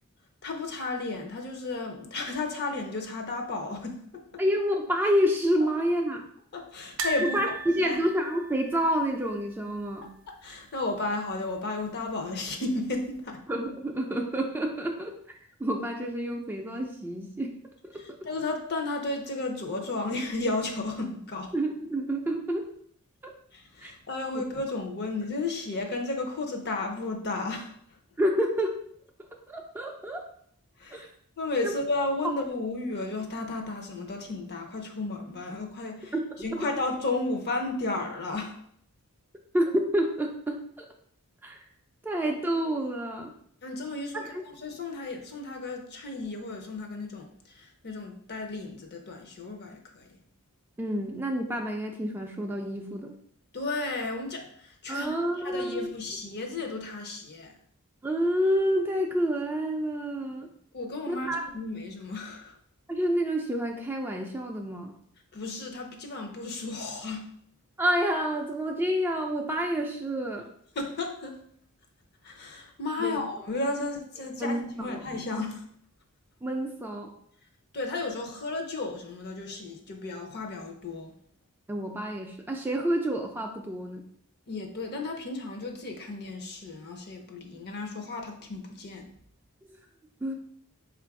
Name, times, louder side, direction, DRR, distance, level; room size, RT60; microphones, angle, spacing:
voice 1, 0.4-4.4 6.5-7.4 7.8-8.0 10.3-13.4 17.9-21.5 23.5-27.7 30.8-31.1 31.4-38.6 43.6-50.1 53.5-55.1 55.4-57.6 60.7-62.6 65.3-67.3 70.7-71.4 72.2-75.7 77.7-81.1 84.5-89.1, left 2 dB, 50° left, 3 dB, 0.7 m, -33 dB
voice 2, 4.4-6.2 7.2-10.1 13.5-15.2 15.6-17.5 17.8-18.2 21.5-22.7 23.8-23.9 24.3-24.4 28.2-28.8 29.5-30.2 30.9-31.1 31.6-31.8 36.1-36.2 39.5-40.9 41.4-41.6 42.0-43.3 44.1-44.4 50.8-53.1 54.9-55.9 58.0-60.5 61.1-61.4 62.9-64.9 67.8-70.5 73.0-73.2 74.4-75.0 76.4-77.1 81.7-84.0 89.6-89.7 90.2-90.3, equal, 10° right, 1 dB, 0.4 m, -28 dB
sound 1, 7.0-10.0 10.3-10.5 10.8-10.9 12.1-12.6 13.1-13.2, right 2 dB, 60° right, 0.5 m, -37 dB
3.8 x 2.5 x 4.6 m, 0.65 s
head